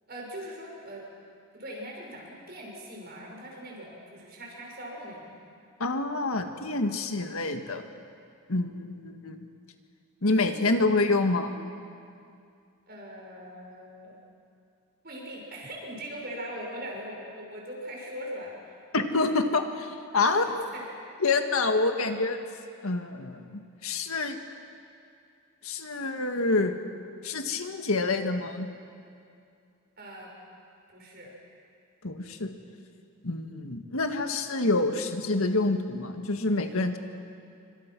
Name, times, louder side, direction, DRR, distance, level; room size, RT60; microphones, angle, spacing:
voice 1, 0.1-1.1 1.5-5.4 12.9-14.2 15.0-19.4 20.1-20.4 20.7-20.8 30.0-30.3 30.9-31.3, equal, 45° right, -1 dB, 6.1 m, -41 dB
voice 2, 5.8-7.9 8.5-9.4 10.2-11.5 18.9-20.4 21.2-22.4 22.8-24.4 25.6-26.8 27.2-28.7 32.0-32.5 33.2-37.0, left 3 dB, 85° left, 6 dB, 1.8 m, -27 dB
27.5 x 25.0 x 6.2 m, 2.4 s
head